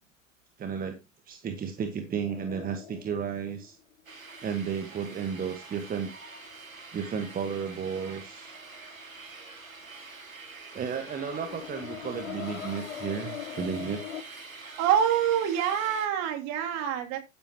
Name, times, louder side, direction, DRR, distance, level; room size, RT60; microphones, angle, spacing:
voice 1, 0.6-1.0 1.3-3.8 4.4-6.1 6.9-8.5 10.7-14.0, right 7 dB, 20° right, 7 dB, 1.5 m, -33 dB
sound 1, 2.2-4.6 11.1-14.2, left 10 dB, 65° left, 1.1 m, -41 dB
sound 2, 4.1-16.1, right 3 dB, 85° right, 2.2 m, -46 dB
voice 2, 14.8-17.2, right 9 dB, 45° right, 4 dB, 2.9 m, -26 dB
10.5 x 10.5 x 3.0 m, 0.25 s
figure-of-eight pair, 85°, 40 cm